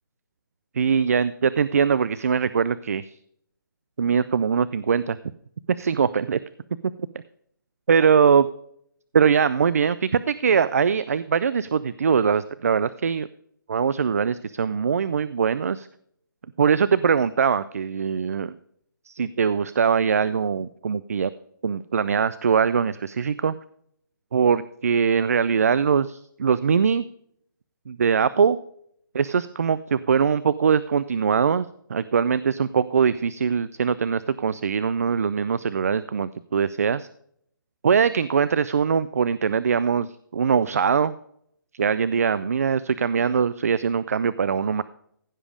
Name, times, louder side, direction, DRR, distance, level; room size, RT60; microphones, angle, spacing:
voice 1, 0.7-3.2 4.0-5.2 5.8-6.4 7.9-8.5 9.1-13.3 13.7-15.9 16.6-18.5 19.1-21.3 21.6-23.5 24.3-27.0 27.9-28.6 29.1-37.1 37.8-41.1 41.7-44.8, right 6 dB, 45° right, 17 dB, 0.3 m, -22 dB
15.5 x 5.1 x 5.0 m, 0.69 s
hypercardioid pair, 170°, 11 cm